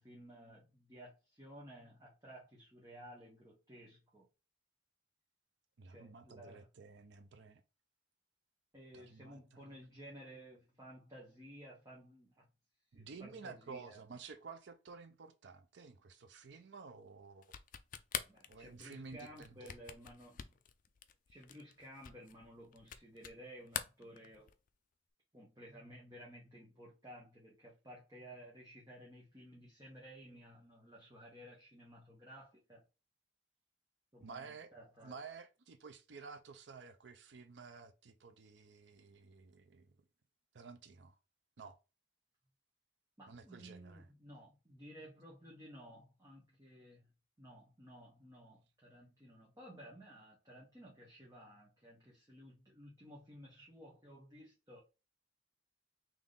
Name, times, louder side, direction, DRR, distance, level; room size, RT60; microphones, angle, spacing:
voice 1, 0.0-4.3 5.9-6.7 8.7-12.5 12.9-14.0 18.3-20.5 21.3-24.5 25.3-32.8 34.1-35.2 43.2-47.1 47.4-54.8, equal, 20° right, 1.2 m, -55 dB
voice 2, 5.8-7.6 8.9-9.9 12.9-17.5 18.5-19.7 34.2-34.7 35.0-39.9 40.5-41.2 41.6-41.8 43.3-44.1, right 4 dB, 70° right, 0.5 m, -52 dB
sound 1, 17.4-23.4 23.7-24.7, left 9 dB, 45° left, 0.4 m, -45 dB
3.6 x 3.0 x 3.8 m
head